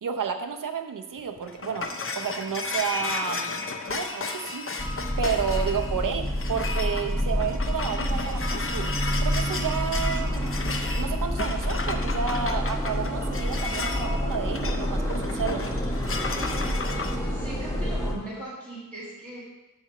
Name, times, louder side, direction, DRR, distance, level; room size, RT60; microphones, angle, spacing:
voice 1, 0.0-4.7 5.2-8.9 9.2-10.5 11.0-15.6, right 7 dB, 70° right, 6 dB, 0.7 m, -31 dB
sound 1, 1.2-17.2, left 3 dB, 40° left, 0.6 m, -34 dB
sound 2, 4.8-18.1, equal, 10° left, 1.1 m, -28 dB
voice 2, 17.3-19.4, right 1 dB, 25° right, -10 dB, 2.1 m, -39 dB
8.6 x 3.3 x 6.5 m, 1.0 s
wide cardioid pair, 110°, 33 cm